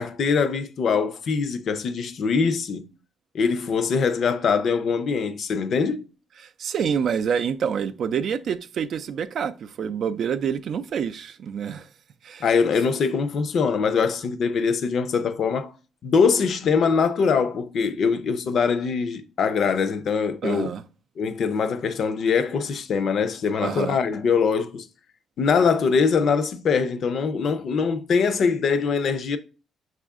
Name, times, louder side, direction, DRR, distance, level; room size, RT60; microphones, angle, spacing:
voice 1, 0.0-2.8 3.3-6.1 12.4-15.7 16.0-20.7 21.2-24.9 25.4-29.4, left 5 dB, 55° left, 0.5 m, -23 dB
voice 2, 6.4-11.9 12.2-12.5 20.4-20.8 23.6-24.0, right 7 dB, 60° right, 0.3 m, -27 dB
6.0 x 2.5 x 3.6 m
cardioid pair, 115°, 0 cm